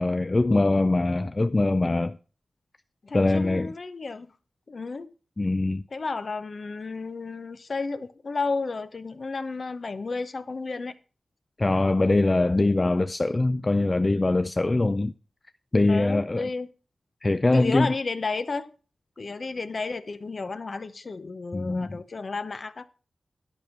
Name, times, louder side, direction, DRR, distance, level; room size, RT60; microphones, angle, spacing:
voice 1, 0.0-2.2 3.1-3.7 5.4-5.8 11.6-15.1 15.7-16.5 17.2-17.9 21.5-22.0, left 2 dB, 35° left, 0.5 m, -23 dB
voice 2, 3.0-4.3 4.7-5.1 5.9-10.9 15.9-16.7 17.5-18.7 19.2-22.9, left 4 dB, 55° left, 0.8 m, -32 dB
11.0 x 5.3 x 6.0 m
cardioid pair, 60°, 0 cm